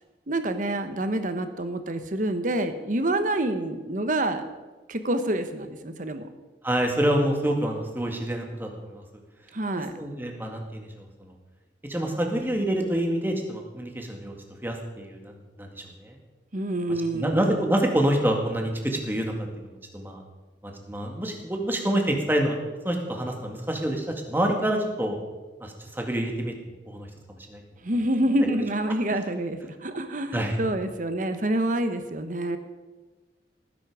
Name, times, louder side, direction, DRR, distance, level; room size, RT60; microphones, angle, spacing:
voice 1, 0.3-4.5 4.9-6.3 9.5-9.9 16.5-17.5 27.8-32.6, right 1 dB, 45° right, 9 dB, 1.1 m, -27 dB
voice 2, 6.6-9.0 10.0-11.3 11.8-14.4 14.6-15.7 16.0-16.2 17.1-20.2 20.6-22.6 22.8-25.2 25.6-26.5 26.9-27.6 30.3-30.6, right 1 dB, 10° right, 2 dB, 2.1 m, -27 dB
18.5 x 10.5 x 4.9 m, 1.2 s
head